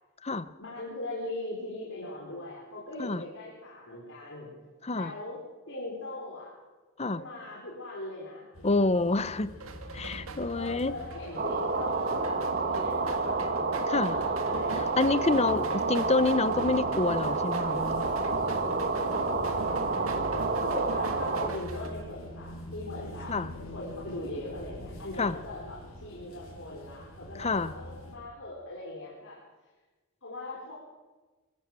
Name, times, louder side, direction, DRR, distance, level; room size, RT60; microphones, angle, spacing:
voice 1, 0.6-4.5 4.9-5.4 5.7-6.5 7.0-8.5 10.5-12.4 12.7-15.2 18.8-20.3 20.6-23.4 23.7-29.4 30.2-30.7, left 2 dB, 65° left, -5 dB, 4.9 m, -40 dB
sound 1, 8.5-28.1, equal, 80° left, 6.9 m, -44 dB
voice 2, 8.6-9.5 9.9-10.9 13.9-14.1 14.7-18.1 23.3-23.5 25.2-25.4 27.4-27.7, left 3 dB, 30° left, 14 dB, 0.8 m, -27 dB
sound 2, 9.6-21.9, right 2 dB, 75° right, 1.9 m, -43 dB
sound 3, 11.4-21.5, right 3 dB, 45° right, 1.7 m, -29 dB
24.5 x 15.0 x 7.5 m, 1.2 s
head